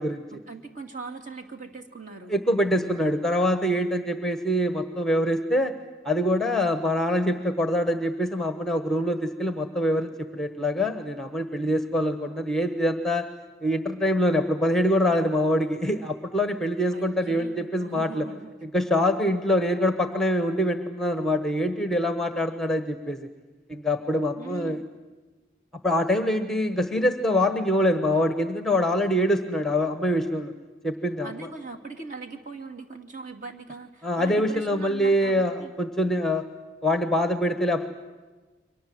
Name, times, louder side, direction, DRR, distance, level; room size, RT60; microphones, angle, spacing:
voice 1, 0.3-2.4 16.9-18.5 24.4-24.8 31.2-35.7, right 4 dB, 40° right, 3 dB, 2.5 m, -40 dB
voice 2, 2.3-5.7 6.0-13.3 13.6-18.2 18.6-23.3 23.7-24.8 25.8-30.5 30.8-31.3 34.0-36.5 36.8-37.9, left 1 dB, ahead, 8 dB, 1.2 m, -24 dB
30.0 x 23.5 x 7.8 m, 1.2 s
head